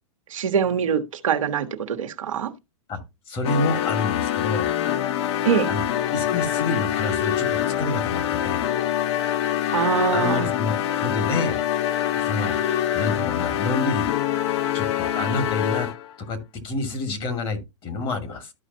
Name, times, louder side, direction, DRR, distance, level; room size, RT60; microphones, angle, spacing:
voice 1, 0.3-2.5 5.4-5.7 9.7-10.5, right 7 dB, 80° right, 1.3 m, -23 dB
voice 2, 3.3-4.7 5.7-5.8 6.1-8.6 10.1-11.6 12.2-12.6 12.9-14.1 14.7-15.9 16.2-16.4 16.6-18.5, left 2 dB, 30° left, 2.3 m, -28 dB
sound 1, 3.4-16.1, left 11 dB, 55° left, 0.7 m, -25 dB
13.0 x 5.0 x 2.8 m
hypercardioid pair, 115°, 17 cm